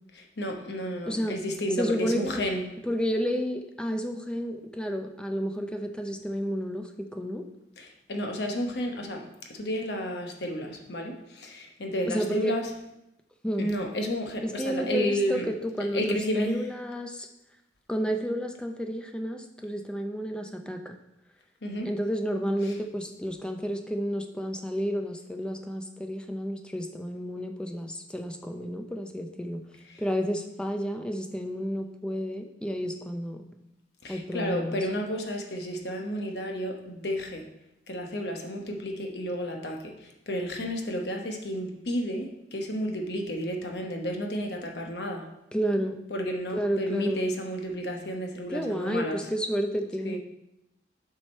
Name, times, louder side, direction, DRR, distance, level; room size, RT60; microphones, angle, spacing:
voice 1, 0.4-2.7 7.8-9.2 9.5-12.7 13.6-15.5 15.9-16.6 21.6-21.9 29.9-30.0 34.0-37.4 37.9-45.3 46.1-49.2 50.0-50.2, equal, 65° left, 2 dB, 1.0 m, -31 dB
voice 2, 1.1-1.4 1.8-2.4 2.8-7.4 12.1-12.5 13.4-13.7 14.4-17.3 17.9-20.9 21.8-29.6 30.0-33.4 34.1-34.9 45.5-46.0 46.5-47.3 48.5-50.2, equal, 5° left, 5 dB, 0.5 m, -31 dB
7.3 x 4.9 x 4.3 m, 0.86 s
head